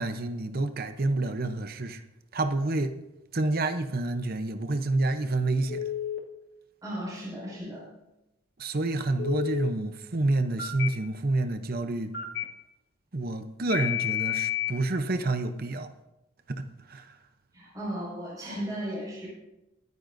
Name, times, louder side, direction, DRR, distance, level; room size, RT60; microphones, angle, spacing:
voice 1, 0.0-2.0 2.3-3.0 3.3-5.9 8.6-12.1 13.1-15.9 16.5-17.2, right 2 dB, 45° right, 0.7 m, -28 dB
Telephone, 5.7-6.2 9.2-9.7 10.6-10.9 12.1-12.4 13.7-14.7, left 11 dB, 50° left, 1.5 m, -30 dB
voice 2, 6.8-7.8 17.5-19.3, equal, 15° right, 5.3 m, -35 dB
22.0 x 9.7 x 2.6 m
head